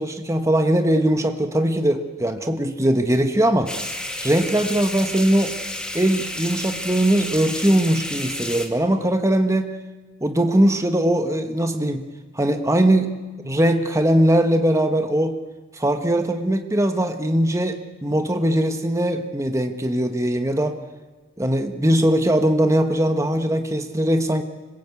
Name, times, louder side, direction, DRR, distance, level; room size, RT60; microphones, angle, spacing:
voice 1, 0.0-3.8 4.2-5.5 5.9-9.7 10.2-12.0 12.3-13.1 13.4-15.4 15.7-20.8 21.4-24.4, right 1 dB, 15° right, 6 dB, 1.4 m, -20 dB
sound 1, 3.7-8.7, left 1 dB, 5° left, 2.3 m, -31 dB
26.0 x 21.5 x 8.4 m, 1.3 s
head